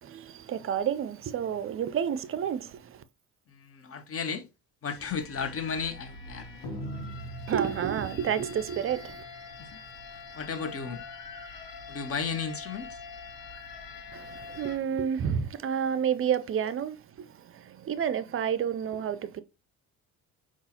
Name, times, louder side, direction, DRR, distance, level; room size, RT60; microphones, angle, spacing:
voice 1, 0.0-3.0 7.5-9.2 14.1-19.4, right 8 dB, 35° right, 0.4 m, -30 dB
voice 2, 3.5-4.5 4.8-6.6 9.6-9.8 10.3-11.0 11.9-13.0, left 6 dB, 40° left, 0.8 m, -34 dB
sound 1, 4.9-14.8, left 2 dB, 75° left, 1.1 m, -43 dB
5.3 x 2.5 x 2.8 m
supercardioid pair, 75°, 36 cm